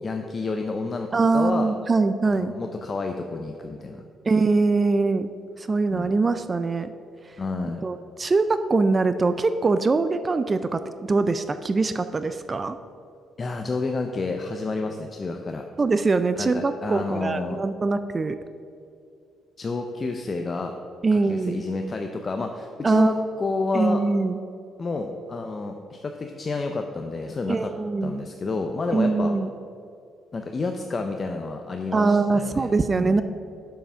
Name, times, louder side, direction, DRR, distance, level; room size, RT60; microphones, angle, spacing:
voice 1, 0.0-1.7 2.2-4.0 5.9-6.1 7.4-7.9 13.4-15.6 16.3-17.6 19.6-20.7 21.1-24.0 24.8-27.7 28.0-29.3 30.3-33.2, left 3 dB, 35° left, 4 dB, 0.5 m, -30 dB
voice 2, 1.1-2.5 4.2-5.3 5.6-6.9 7.8-10.8 11.1-12.8 15.8-18.4 21.0-21.6 22.8-23.1 23.7-24.4 27.5-28.2 28.9-29.5 31.9-33.2, right 3 dB, 30° right, 11 dB, 0.3 m, -22 dB
6.9 x 5.6 x 6.2 m, 2.4 s
cardioid pair, 90°, 0 cm